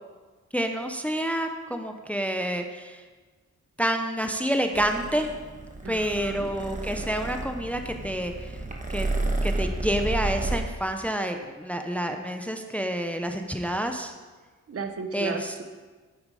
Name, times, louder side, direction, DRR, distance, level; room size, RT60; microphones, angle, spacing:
voice 1, 0.5-3.0 3.8-5.3 5.8-8.6 8.9-9.1 9.4-14.1 15.1-15.5, equal, 5° left, 5 dB, 0.6 m, -28 dB
Purr, 4.7-10.6, right 2 dB, 25° right, 1.3 m, -31 dB
voice 2, 5.8-6.5 14.7-15.6, right 4 dB, 50° right, 6 dB, 0.9 m, -34 dB
8.8 x 8.0 x 4.9 m, 1.4 s
wide cardioid pair, 110°, 29 cm